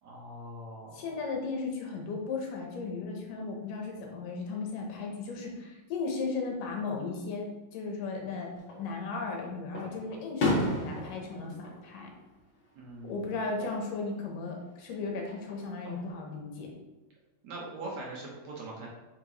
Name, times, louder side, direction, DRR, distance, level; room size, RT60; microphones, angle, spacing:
voice 1, 0.0-1.2 12.8-13.4 17.4-18.9, right 2 dB, 65° right, -3 dB, 2.2 m, -42 dB
voice 2, 0.9-8.5 8.8-12.1 13.0-16.7, left 4 dB, 75° left, 0 dB, 2.6 m, -36 dB
Fireworks, 8.6-9.3 9.7-12.9 13.2-13.8 15.3-16.1, left 1 dB, 45° left, 1.7 m, -34 dB
8.7 x 5.0 x 3.1 m, 1.1 s
omnidirectional pair, 4.0 m